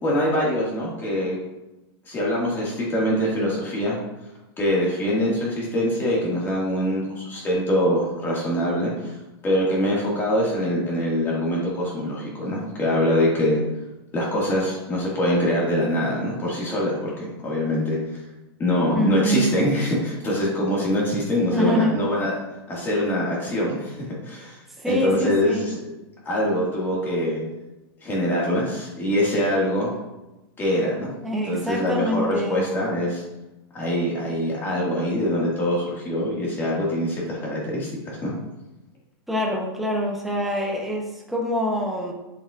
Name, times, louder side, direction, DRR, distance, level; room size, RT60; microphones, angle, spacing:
voice 1, 0.0-1.4 2.0-4.0 4.6-9.1 9.4-13.6 14.1-18.2 18.6-22.4 22.7-24.0 24.2-24.6 24.9-25.8 26.3-27.4 28.0-29.9 30.6-31.1 31.5-33.2 33.7-38.3, left 1 dB, 15° left, -5 dB, 1.9 m, -24 dB
voice 2, 18.9-19.6 21.5-22.0 24.8-25.7 31.2-32.7 39.3-42.1, equal, ahead, -2 dB, 0.8 m, -25 dB
8.4 x 7.1 x 2.4 m, 1.0 s
supercardioid pair, 160°, 14 cm